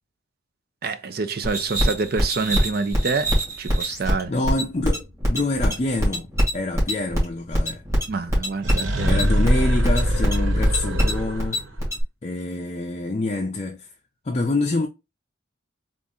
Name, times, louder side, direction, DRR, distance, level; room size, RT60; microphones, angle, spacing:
voice 1, 0.8-3.3 3.6-4.3 8.1-9.3, right 4 dB, 55° right, 0.5 m, -27 dB
sound 1, 1.4-12.0, equal, 15° right, 2.0 m, -23 dB
voice 2, 4.3-7.8 9.0-11.6 12.2-13.9 14.3-14.9, left 2 dB, 35° left, 0.4 m, -26 dB
sound 2, 8.6-11.7, equal, 85° right, 0.9 m, -23 dB
4.0 x 2.5 x 3.6 m
head